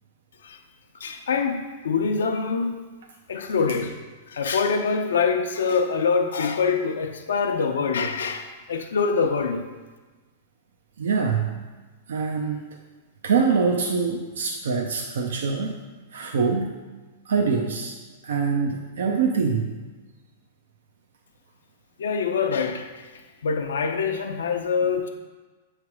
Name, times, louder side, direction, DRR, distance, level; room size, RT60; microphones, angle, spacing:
voice 1, 1.0-2.8 3.3-4.0 4.3-9.7 22.0-23.1 23.4-25.1, left 5 dB, 85° left, 4 dB, 0.6 m, -25 dB
voice 2, 11.0-11.5 12.1-12.6 13.2-15.8 16.1-16.7 17.3-17.9 18.2-19.7, right 5 dB, 80° right, 1 dB, 0.6 m, -24 dB
7.3 x 3.3 x 4.7 m, 1.3 s
hypercardioid pair, 135°, 0 cm